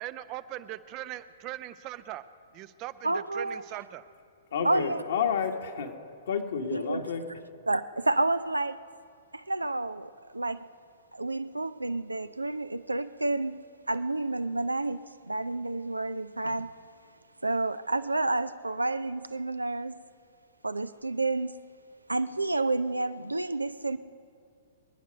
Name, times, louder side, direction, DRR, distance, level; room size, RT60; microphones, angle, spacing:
voice 1, 0.0-2.2 2.5-4.0 4.7-4.8, right 14 dB, 35° right, 13 dB, 0.6 m, -40 dB
voice 2, 3.0-3.6 4.6-5.0 6.7-7.0 7.7-8.8 9.3-10.6 11.1-13.6 13.9-16.7 17.4-19.9 20.6-21.5 22.1-24.0, right 2 dB, 85° right, 13 dB, 0.5 m, -30 dB
voice 3, 4.5-6.0 6.3-7.3, left 7 dB, 60° left, 3 dB, 1.8 m, -30 dB
26.0 x 9.5 x 5.3 m, 2.3 s
figure-of-eight pair, 110°, 0 cm